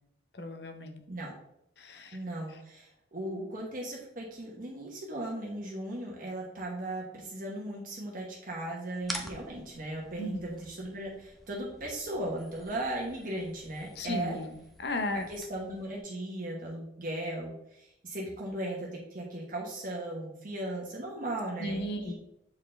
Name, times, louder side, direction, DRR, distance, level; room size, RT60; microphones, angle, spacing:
voice 1, 0.3-1.0 1.8-2.2 10.2-10.4 14.0-15.3 21.6-22.1, left 1 dB, 65° left, 7 dB, 0.8 m, -35 dB
voice 2, 2.1-14.4 15.3-22.1, right 1 dB, 50° right, -2 dB, 1.1 m, -37 dB
sound 1, 9.0-16.0, equal, ahead, 0.7 m, -47 dB
7.1 x 4.4 x 3.3 m, 0.80 s
head